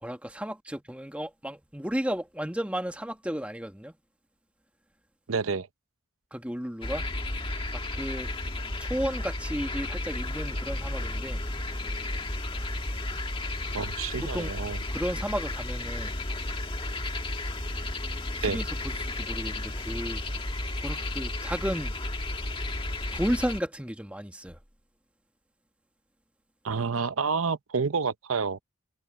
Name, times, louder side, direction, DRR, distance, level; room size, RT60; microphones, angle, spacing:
voice 1, 0.0-3.9 6.3-7.0 7.9-8.3 8.8-11.4 14.2-14.5 14.9-16.1 18.5-20.2 20.8-21.9 23.1-24.6, equal, 5° right, 1.5 m, -33 dB
voice 2, 5.3-5.7 13.7-14.8 18.4-18.6 26.6-28.6, right 5 dB, 80° right, 0.8 m, -29 dB
sound 1, 6.8-23.6, left 2 dB, 25° left, 2.0 m, -33 dB
head